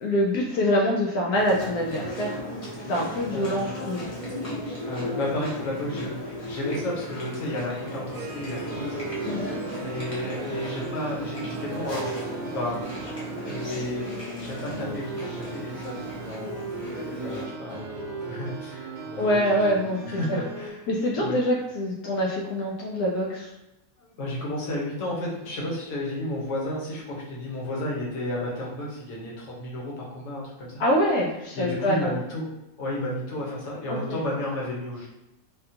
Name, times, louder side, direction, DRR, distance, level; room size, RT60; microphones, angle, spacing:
voice 1, 0.0-2.4 2.9-4.1 9.3-9.6 19.2-20.0 20.3-20.4 20.9-23.5 30.8-32.2 33.9-34.2, equal, 80° left, -3 dB, 1.1 m, -25 dB
Chewing mastication, 1.3-17.4, equal, 35° left, 0.6 m, -36 dB
voice 2, 3.3-3.7 4.8-9.0 9.7-12.9 13.4-16.7 17.2-19.4 19.7-20.8 21.2-21.4 24.0-30.8 31.5-32.5 32.8-35.1, left 1 dB, 55° left, -4 dB, 1.2 m, -32 dB
Harp, 7.8-14.9, right 3 dB, 70° right, 0.9 m, -42 dB
sound 1, 8.7-20.7, right 3 dB, 45° right, 0.7 m, -37 dB
3.5 x 2.2 x 2.8 m, 0.93 s
omnidirectional pair, 1.6 m